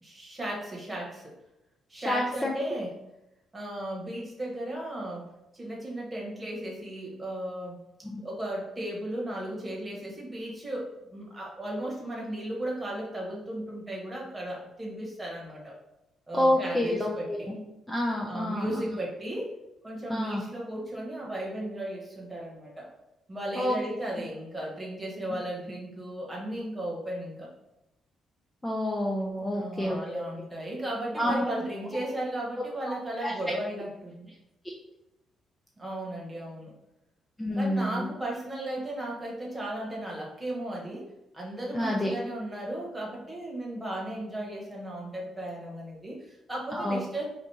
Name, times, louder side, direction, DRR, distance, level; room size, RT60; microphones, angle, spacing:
voice 1, 0.0-1.3 1.9-2.9 3.5-5.2 5.5-7.8 8.2-15.8 16.3-17.5 18.3-19.5 19.8-22.9 23.3-27.5 29.5-34.3 35.8-36.7 37.6-41.1 41.3-47.3, right 1 dB, 15° right, -3 dB, 1.3 m, -35 dB
voice 2, 1.9-2.5 8.0-8.2 16.3-17.6 17.9-18.9 20.1-20.4 23.5-23.8 28.6-30.2 31.2-31.4 33.2-33.3 37.4-38.1 41.7-42.1 46.7-47.0, left 1 dB, 15° left, -2 dB, 0.5 m, -28 dB
5.0 x 2.5 x 2.8 m, 0.93 s
cardioid pair, 90°, 0 cm